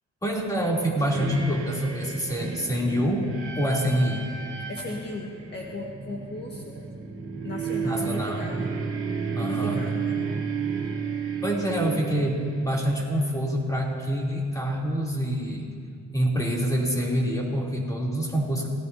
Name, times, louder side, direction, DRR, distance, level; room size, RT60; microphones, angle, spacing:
voice 1, 0.2-4.2 7.8-8.6 9.3-9.8 11.4-15.7 16.1-18.7, equal, 10° left, -3 dB, 3.0 m, -26 dB
sound 1, 1.1-13.2, right 6 dB, 45° right, 2.3 m, -33 dB
voice 2, 4.7-6.8 7.4-8.6 9.4-10.2, left 2 dB, 35° left, -2 dB, 1.6 m, -36 dB
27.0 x 18.0 x 2.7 m, 2.1 s
cardioid pair, 130°, 30 cm